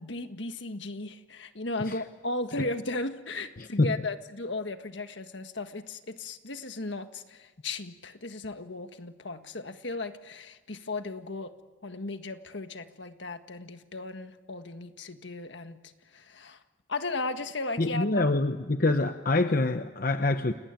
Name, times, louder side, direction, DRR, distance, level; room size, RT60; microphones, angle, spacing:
voice 1, 0.0-11.5 11.8-15.8 16.1-16.6 16.9-18.2, left 2 dB, 65° left, 8 dB, 1.7 m, -36 dB
voice 2, 3.6-3.9 17.8-20.5, left 2 dB, 45° left, 8 dB, 0.9 m, -26 dB
29.0 x 19.0 x 9.1 m, 1.3 s
head